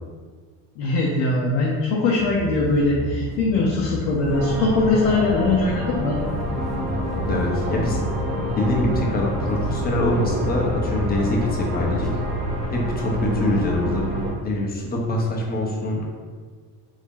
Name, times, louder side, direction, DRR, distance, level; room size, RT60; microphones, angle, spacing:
voice 1, 0.8-6.2, left 2 dB, 70° left, -3 dB, 0.7 m, -21 dB
sound 1, 2.2-12.4, left 2 dB, ahead, 0.4 m, -33 dB
sound 2, 4.3-14.3, equal, 80° right, 1.0 m, -28 dB
sound 3, 6.8-13.5, left 2 dB, 15° right, 0.7 m, -35 dB
voice 2, 7.3-8.0 8.6-12.2 12.7-16.0, left 1 dB, 20° left, -1 dB, 0.7 m, -24 dB
2.7 x 2.7 x 3.6 m, 1.5 s
supercardioid pair, 95°, 41 cm